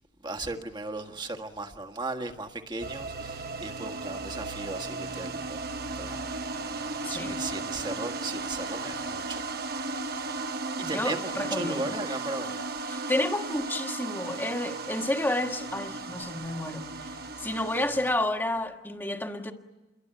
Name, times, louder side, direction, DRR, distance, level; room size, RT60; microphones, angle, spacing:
voice 1, 0.2-5.7 5.9-6.3 6.6-10.0 10.8-12.8, right 2 dB, 25° right, 1.7 m, -37 dB
sound 1, 2.8-18.1, right 3 dB, 60° right, 1.2 m, -35 dB
voice 2, 7.0-7.4 10.8-11.9 12.9-17.1 17.4-19.5, left 1 dB, 10° left, 1.7 m, -30 dB
28.5 x 23.0 x 9.1 m
head